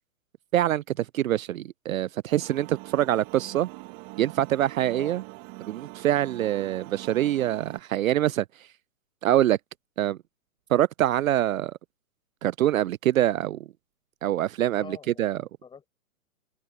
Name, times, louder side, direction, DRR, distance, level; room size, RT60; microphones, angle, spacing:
voice 1, 0.5-3.7 4.2-5.2 5.6-8.7 9.2-9.6 10.0-10.2 10.7-11.8 12.4-13.7 14.2-15.4, right 12 dB, 65° right, 0.6 m, -25 dB
sound 1, 2.4-7.8, right 25 dB, 30° right, 1.7 m, -43 dB
voice 2, 14.7-15.9, left 6 dB, 10° left, 7.1 m, -46 dB
hypercardioid pair, 145°, 43 cm